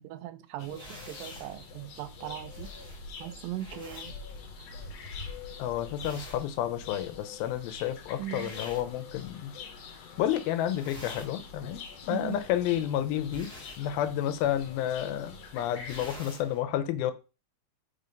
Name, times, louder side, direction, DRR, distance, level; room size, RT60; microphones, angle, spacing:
voice 1, 0.0-2.7 3.2-4.1 8.2-8.6 12.1-12.4, right 14 dB, 80° right, 2.2 m, -39 dB
sound 1, 0.6-16.2, left 5 dB, 70° left, 1.6 m, -45 dB
sound 2, 0.7-9.6 9.9-10.4 10.6-16.6, equal, ahead, 1.6 m, -50 dB
voice 2, 5.6-9.5 10.2-11.8 12.1-17.1, left 11 dB, 85° left, 2.5 m, -30 dB
5.6 x 4.0 x 5.1 m
omnidirectional pair, 4.2 m